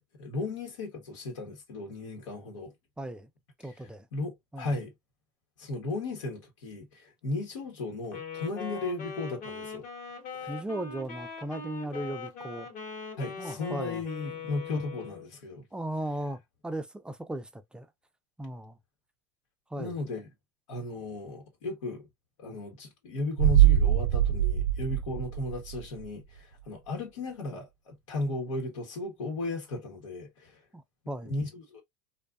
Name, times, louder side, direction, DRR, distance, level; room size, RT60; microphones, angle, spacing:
voice 1, 0.2-2.7 3.6-4.9 5.6-9.9 10.3-10.5 13.2-15.7 19.8-20.3 20.7-22.1 22.4-30.6 31.2-31.8, left 2 dB, 85° left, 1.1 m, -36 dB
voice 2, 3.0-3.3 3.6-4.1 4.5-4.7 10.5-12.7 13.4-14.0 14.7-14.8 15.7-17.9 18.4-18.8 19.7-19.9 30.7-31.3, right 1 dB, 5° right, 0.4 m, -37 dB
Wind instrument woodwind instrument, 8.0-15.3, left 5 dB, 50° left, 1.1 m, -41 dB
sound 1, 23.4-26.1 26.4-26.5, right 12 dB, 90° right, 0.4 m, -23 dB
2.5 x 2.3 x 2.2 m
hypercardioid pair, 100°, 16 cm